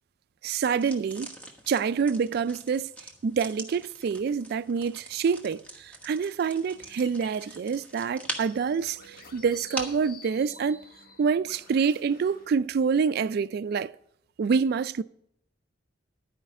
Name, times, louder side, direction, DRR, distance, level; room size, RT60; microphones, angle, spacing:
voice 1, 0.4-1.3 1.7-2.9 3.2-10.8 11.2-13.9 14.4-15.0, right 6 dB, 55° right, 0.3 m, -27 dB
sound 1, 0.7-10.1, right 1 dB, 5° left, 1.2 m, -43 dB
sound 2, 6.5-12.5, left 2 dB, 50° left, 1.2 m, -50 dB
11.5 x 5.0 x 7.4 m
head